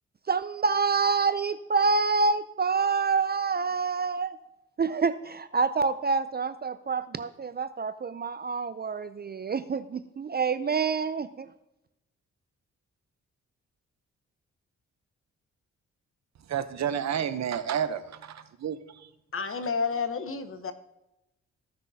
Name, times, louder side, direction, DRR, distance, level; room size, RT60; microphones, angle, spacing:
voice 1, 0.3-4.4 4.8-11.5, right 4 dB, 35° right, 0.4 m, -27 dB
voice 2, 16.5-19.1, right 9 dB, 65° right, 0.8 m, -31 dB
voice 3, 19.3-20.7, left 5 dB, 45° left, 1.0 m, -30 dB
15.0 x 6.1 x 2.7 m
supercardioid pair, 55°, 30 cm